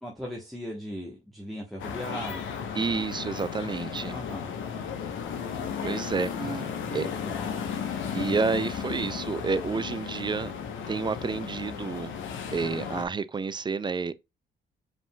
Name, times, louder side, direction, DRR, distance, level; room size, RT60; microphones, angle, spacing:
voice 1, 0.0-2.5 4.0-4.5 6.4-7.7, equal, ahead, 1.1 m, -38 dB
sound 1, 1.8-13.1, left 7 dB, 75° left, 0.9 m, -34 dB
voice 2, 2.7-4.2 5.8-6.3 6.9-7.1 8.1-10.5 10.9-12.1 12.5-14.1, right 4 dB, 25° right, 0.4 m, -29 dB
4.9 x 3.7 x 2.2 m
cardioid pair, 90°, 20 cm